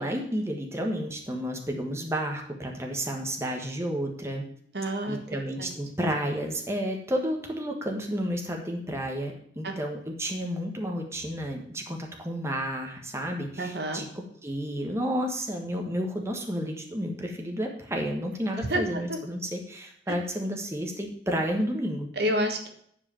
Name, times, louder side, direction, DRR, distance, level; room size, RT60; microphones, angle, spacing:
voice 1, 0.0-4.4 5.1-14.0 14.4-22.1, equal, 15° right, 1 dB, 1.4 m, -31 dB
voice 2, 4.7-5.2 5.6-5.7 9.6-9.8 13.6-14.0 18.7-18.8 19.1-19.2 22.2-22.7, equal, 60° right, 5 dB, 1.4 m, -28 dB
10.5 x 4.9 x 7.0 m, 0.65 s
head